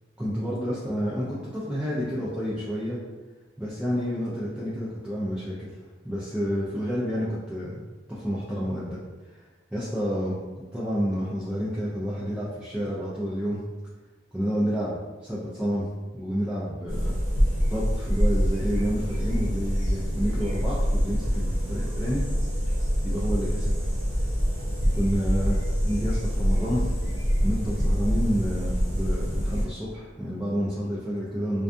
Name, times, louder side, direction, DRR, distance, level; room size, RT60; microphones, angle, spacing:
voice 1, 0.2-3.0 3.6-5.7 6.0-9.0 9.3-9.4 9.7-10.4 10.7-13.6 14.3-15.9 16.1-17.1 17.7-22.2 23.0-23.7 24.9-26.8 27.4-31.6, equal, 5° right, -9 dB, 0.3 m, -29 dB
sound 1, 16.9-29.6, equal, 90° right, 1.1 m, -25 dB
2.5 x 2.2 x 2.5 m, 1.2 s
head